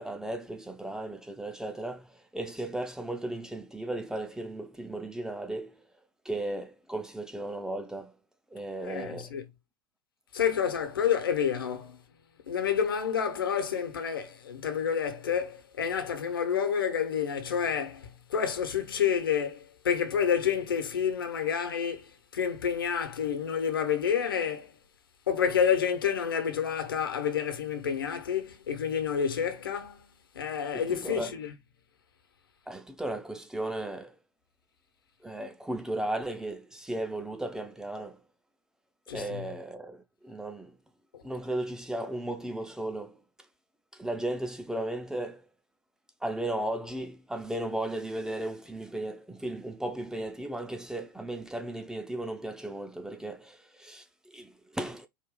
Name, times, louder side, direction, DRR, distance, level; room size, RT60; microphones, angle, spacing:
voice 1, 0.0-5.8 6.2-8.1 8.5-9.3 30.7-31.3 32.7-34.2 35.2-38.2 39.1-40.8 41.2-43.2 43.9-45.4 46.2-55.1, right 1 dB, 5° right, 0.6 m, -35 dB
voice 2, 8.8-9.4 10.3-12.0 12.5-24.8 25.3-31.5 39.1-39.4 41.1-41.2, left 8 dB, 70° left, 1.1 m, -29 dB
4.6 x 2.7 x 3.8 m
figure-of-eight pair, 85°, 12 cm